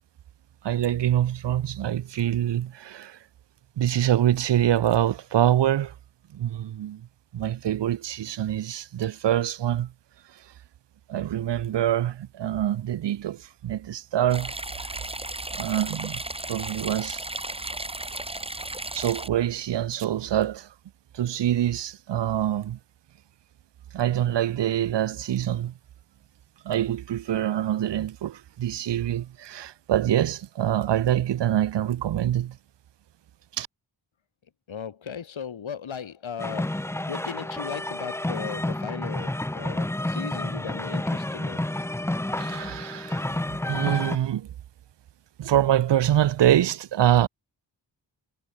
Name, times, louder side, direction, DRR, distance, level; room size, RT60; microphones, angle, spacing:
voice 1, 0.6-3.2 3.8-5.9 6.3-7.1 7.3-9.9 11.1-14.6 15.5-16.2 16.5-17.2 18.9-20.7 21.1-22.8 23.9-25.7 26.6-32.6 33.6-33.7 42.4-43.4 43.7-44.5 45.4-47.3, right 11 dB, 65° right, 0.6 m, -25 dB
sound 1, 14.3-19.3, right 2 dB, 10° right, 1.7 m, -34 dB
voice 2, 34.7-41.6, left 7 dB, 80° left, 2.9 m, -37 dB
sound 2, 36.4-44.2, left 1 dB, 5° left, 0.6 m, -30 dB
wide cardioid pair, 100°, 46 cm